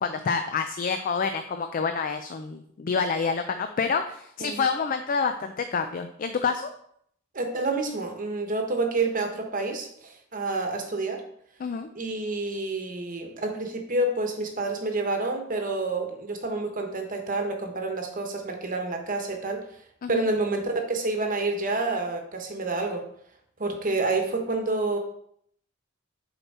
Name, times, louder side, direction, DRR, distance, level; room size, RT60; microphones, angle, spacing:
voice 1, 0.0-6.7 11.6-11.9 20.0-20.2, left 5 dB, 40° left, 8 dB, 0.4 m, -28 dB
voice 2, 7.3-11.2 11.9-19.6 20.1-23.0 23.6-25.0, right 2 dB, 40° right, 4 dB, 1.0 m, -28 dB
6.9 x 4.3 x 4.2 m, 0.69 s
head